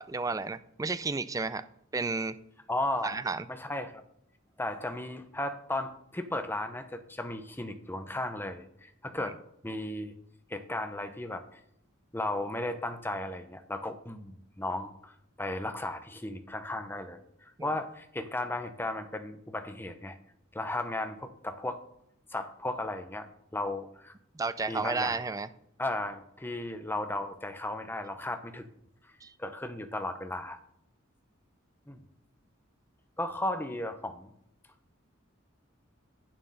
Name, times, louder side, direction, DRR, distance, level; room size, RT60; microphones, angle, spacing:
voice 1, 0.0-1.7 1.9-2.4 3.0-3.4 24.3-25.5 29.2-29.3, right 3 dB, 15° right, 14 dB, 0.4 m, -32 dB
voice 2, 2.7-3.2 3.5-4.0 4.6-9.4 9.6-10.1 10.5-11.6 12.1-15.1 15.4-20.2 20.5-21.8 22.3-23.3 23.5-24.1 24.7-25.2 25.8-28.7 29.4-30.6 31.9-32.0 33.2-34.3, left 1 dB, 10° left, 7 dB, 0.9 m, -35 dB
8.9 x 7.5 x 5.6 m, 0.75 s
head